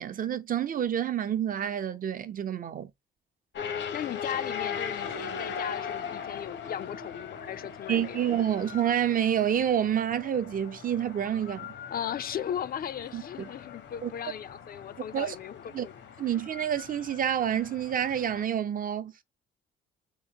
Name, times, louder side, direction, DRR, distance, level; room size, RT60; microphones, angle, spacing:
voice 1, 0.0-2.9 7.9-11.7 13.1-13.2 14.0-14.1 15.1-15.4 15.7-15.9 16.2-19.2, right 9 dB, 45° right, 0.5 m, -28 dB
sound 1, 3.5-18.4, left 7 dB, 65° left, 0.8 m, -40 dB
voice 2, 3.9-8.2 11.9-15.9, left 9 dB, 50° left, 0.4 m, -37 dB
3.7 x 3.2 x 2.8 m
cardioid pair, 90°, 20 cm